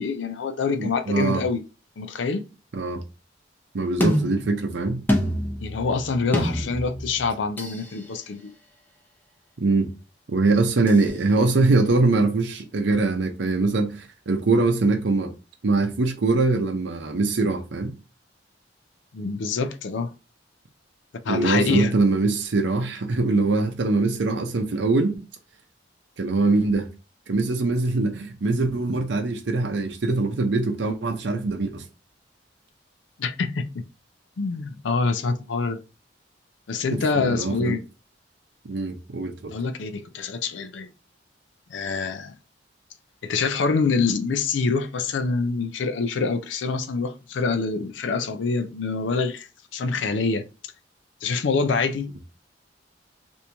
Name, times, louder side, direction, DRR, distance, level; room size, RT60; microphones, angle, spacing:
voice 1, 0.0-1.6 2.0-2.5 5.6-8.5 19.1-20.1 21.2-21.9 33.2-33.8 34.4-35.8 36.7-37.8 39.5-40.9 41.7-42.3 43.2-50.5 51.2-52.1, left 4 dB, 80° left, 0.4 m, -26 dB
voice 2, 0.8-1.4 2.7-3.0 3.7-5.0 9.6-9.9 10.3-15.3 15.6-18.0 21.3-25.2 26.2-26.9 27.3-31.9 36.9-37.8 38.6-39.5, right 3 dB, 70° right, 0.6 m, -23 dB
sound 1, 4.0-7.9 10.9-11.0, equal, 10° left, 0.6 m, -27 dB
2.9 x 2.7 x 3.3 m
head